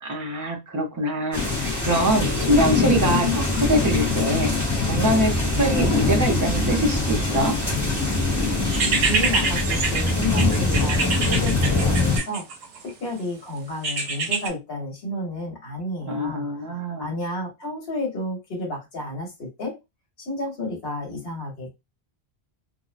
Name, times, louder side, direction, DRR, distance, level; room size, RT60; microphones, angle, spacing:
voice 1, 0.0-4.5 4.8-7.5 16.0-17.1, right 1 dB, 20° right, 1 dB, 0.6 m, -24 dB
sound 1, 1.3-12.2, left 3 dB, 15° left, 1.0 m, -23 dB
sound 2, 8.7-12.9 13.8-14.5, right 4 dB, 70° right, 0.8 m, -25 dB
voice 2, 9.1-12.4 12.8-16.4 17.0-19.7 20.2-21.7, left 1 dB, 65° left, -1 dB, 1.3 m, -31 dB
2.6 x 2.1 x 2.4 m, 0.23 s
omnidirectional pair, 1.1 m